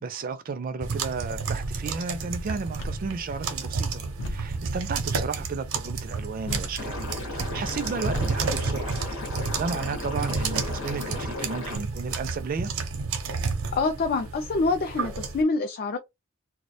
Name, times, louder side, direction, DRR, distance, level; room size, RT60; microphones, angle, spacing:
voice 1, 0.0-9.0 9.4-12.7, right 4 dB, 45° right, 0.4 m, -33 dB
sound 1, 0.8-15.4, right 4 dB, 90° right, 0.6 m, -31 dB
sound 2, 6.4-10.1, equal, 70° left, 0.7 m, -39 dB
Liquid, 6.8-11.8, left 2 dB, 90° left, 1.1 m, -35 dB
voice 2, 13.7-16.0, left 3 dB, 45° left, 0.3 m, -26 dB
2.3 x 2.1 x 2.6 m
head